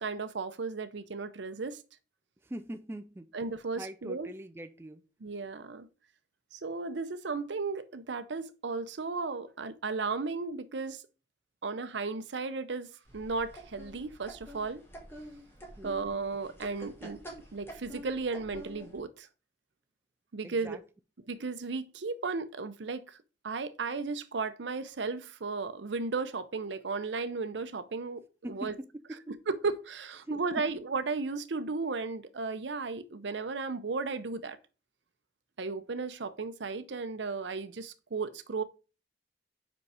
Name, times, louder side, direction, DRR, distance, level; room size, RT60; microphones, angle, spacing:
voice 1, 0.0-1.8 3.3-4.3 5.2-5.9 6.5-11.0 11.6-14.8 15.8-17.2 17.5-19.3 20.3-20.8 21.3-23.2 23.4-28.2 28.5-28.7 29.5-34.6 35.6-38.6, right 4 dB, 85° right, 0.7 m, -35 dB
voice 2, 2.4-3.3 3.7-5.0 15.8-16.0 20.4-20.8 28.4-29.3 30.2-30.7, right 1 dB, 15° right, 0.4 m, -43 dB
sound 1, 13.1-19.0, equal, 15° left, 1.6 m, -48 dB
5.4 x 5.3 x 4.8 m
head